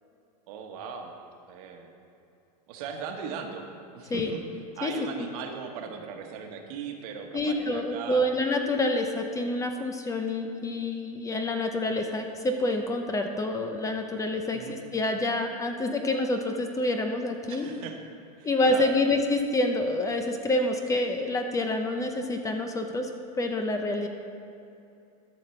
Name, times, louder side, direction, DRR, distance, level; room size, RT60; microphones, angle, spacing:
voice 1, 0.5-1.2 1.5-1.9 2.7-3.7 3.9-4.4 4.7-8.2 14.5-14.8 17.5-18.0 18.4-19.1, right 6 dB, 60° right, 3 dB, 1.3 m, -38 dB
voice 2, 7.3-17.7 18.4-23.1 23.3-24.1, left 2 dB, 15° left, 5 dB, 0.6 m, -27 dB
13.0 x 5.8 x 4.4 m, 2.7 s
supercardioid pair, 125°, 21 cm